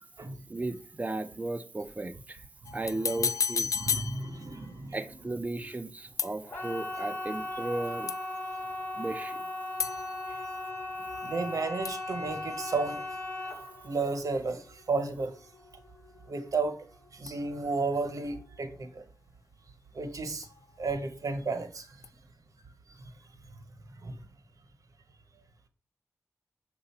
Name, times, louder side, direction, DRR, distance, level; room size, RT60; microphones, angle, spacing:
voice 1, 0.5-2.4 2.7-3.7 4.9-8.1 9.0-9.4, right 2 dB, 25° right, 0.6 m, -35 dB
sound 1, 2.7-4.8 6.2-6.9 8.1-8.6 9.8-11.6 11.9-13.0 17.3-18.0 20.4-21.1 22.0-22.1, left 6 dB, 75° left, 0.3 m, -35 dB
voice 2, 3.7-5.0 10.3-13.5 13.8-15.4 16.3-16.8 17.1-19.1 19.9-20.5 20.8-22.1 22.9-23.0 24.0-24.2, right 3 dB, 85° right, 1.1 m, -33 dB
sound 2, 6.4-17.3 17.6-18.2 18.5-18.6, left 1 dB, 25° left, 2.2 m, -38 dB
6.8 x 2.6 x 5.5 m
wide cardioid pair, 70°, 6 cm